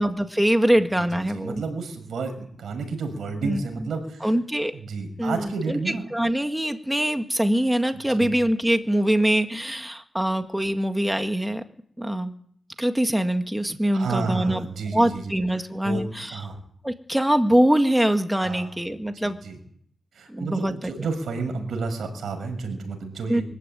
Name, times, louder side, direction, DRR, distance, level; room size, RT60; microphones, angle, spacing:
voice 1, 0.0-1.6 3.4-3.9 4.2-4.7 5.2-11.6 12.0-12.3 12.8-14.7 14.9-16.4 16.8-19.4 20.3-20.9 23.3-23.4, right 1 dB, 5° right, 6 dB, 1.9 m, -23 dB
voice 2, 1.0-4.3 4.7-6.1 7.9-8.3 13.9-15.3 15.8-16.0 16.3-16.6 18.4-18.7 19.2-19.6 20.1-23.4, right 4 dB, 80° right, 5 dB, 6.8 m, -31 dB
24.5 x 15.0 x 9.1 m, 0.62 s
cardioid pair, 75°, 0 cm